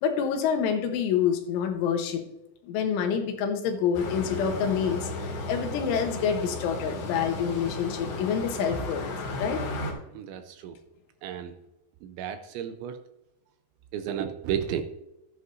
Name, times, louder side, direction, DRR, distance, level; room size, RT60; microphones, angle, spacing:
voice 1, 0.0-2.2 2.6-9.0 9.4-9.6, left 7 dB, 80° left, 5 dB, 3.4 m, -27 dB
sound 1, 3.9-9.9, left 2 dB, 60° left, 4.2 m, -34 dB
voice 2, 10.1-10.8 11.2-11.5 12.0-13.0 13.9-14.8, right 9 dB, 80° right, 8 dB, 2.8 m, -32 dB
13.0 x 11.0 x 2.7 m, 0.92 s
omnidirectional pair, 5.7 m